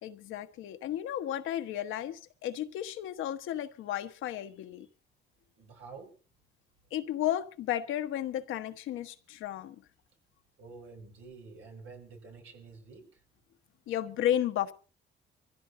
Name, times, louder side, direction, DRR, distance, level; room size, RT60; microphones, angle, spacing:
voice 1, 0.0-4.9 6.9-9.8 13.9-14.7, left 11 dB, 85° left, 1.2 m, -33 dB
voice 2, 5.6-6.1 10.6-13.2, right 4 dB, 85° right, 5.5 m, -49 dB
24.5 x 15.5 x 2.7 m
cardioid pair, 90°, 20 cm